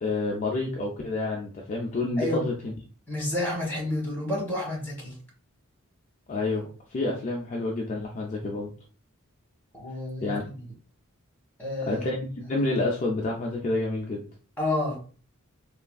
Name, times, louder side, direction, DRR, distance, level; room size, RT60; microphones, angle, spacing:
voice 1, 0.0-2.7 6.3-8.7 10.2-10.4 11.9-14.2, left 2 dB, 35° left, -1 dB, 0.3 m, -29 dB
voice 2, 2.2-2.5 3.1-5.2 9.7-10.7 11.6-12.1 14.6-15.0, left 1 dB, 10° left, -2 dB, 1.1 m, -30 dB
3.4 x 2.4 x 2.2 m, 0.39 s
head